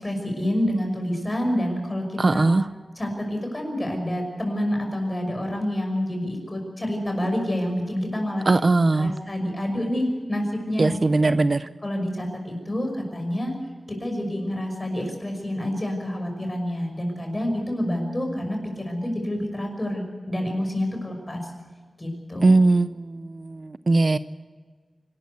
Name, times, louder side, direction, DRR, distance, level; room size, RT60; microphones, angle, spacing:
voice 1, 0.0-2.5 3.0-8.5 9.0-11.4 11.8-13.6 13.9-21.5 22.0-22.6, left 1 dB, 25° left, 3 dB, 6.0 m, -28 dB
voice 2, 2.2-2.6 8.5-9.1 10.8-11.7 22.4-24.2, right 3 dB, 45° right, 13 dB, 0.6 m, -20 dB
26.0 x 13.0 x 8.2 m, 1.5 s
wide cardioid pair, 100°, 0 cm